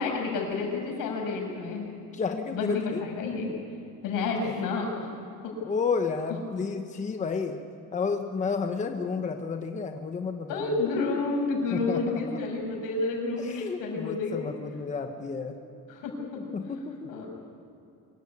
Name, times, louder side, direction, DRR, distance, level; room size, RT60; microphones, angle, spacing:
voice 1, 0.0-1.9 2.5-3.5 4.0-5.1 10.5-14.4 15.9-16.4 17.1-17.3, left 3 dB, 80° left, 1 dB, 6.4 m, -30 dB
voice 2, 2.1-3.0 5.6-7.6 7.9-10.7 11.7-12.4 13.4-15.5 16.5-17.1, left 5 dB, 20° left, 5 dB, 1.0 m, -31 dB
25.0 x 15.5 x 9.7 m, 2.7 s
cardioid pair, 170°, 32 cm